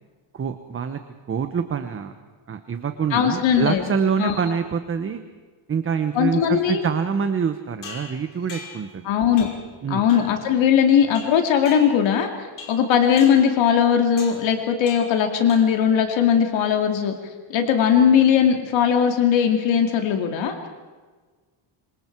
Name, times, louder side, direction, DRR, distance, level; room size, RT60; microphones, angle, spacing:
voice 1, 0.3-1.0 1.3-2.1 2.5-5.2 5.7-9.1 9.8-10.1, right 6 dB, 25° right, 8 dB, 1.1 m, -25 dB
voice 2, 3.1-3.8 4.2-4.3 6.1-6.8 9.0-9.5 9.9-12.3 12.7-17.1 17.5-20.7, left 8 dB, 65° left, 4 dB, 2.6 m, -19 dB
sound 1, 7.8-8.9 9.4-9.7 10.1-10.4 11.1-12.2 12.6-12.9 13.2-13.5 14.2-14.5 14.9-15.2 15.5-15.9, left 4 dB, 40° left, 5.6 m, -40 dB
26.5 x 26.0 x 4.7 m, 1.4 s
cardioid pair, 155°, 48 cm